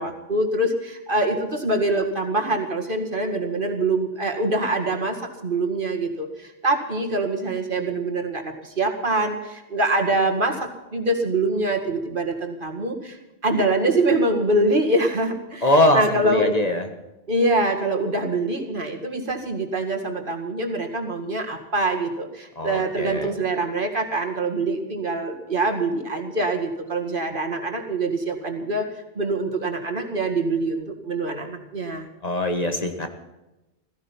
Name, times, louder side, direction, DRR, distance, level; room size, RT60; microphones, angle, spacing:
voice 1, 0.0-13.2 13.4-16.5 17.3-28.9 29.1-32.1, right 2 dB, 50° right, 3 dB, 2.2 m, -24 dB
voice 2, 15.6-16.9 22.6-23.3 32.2-33.1, left 1 dB, 35° left, 5 dB, 1.6 m, -22 dB
16.0 x 15.5 x 5.7 m, 1.0 s
omnidirectional pair, 1.2 m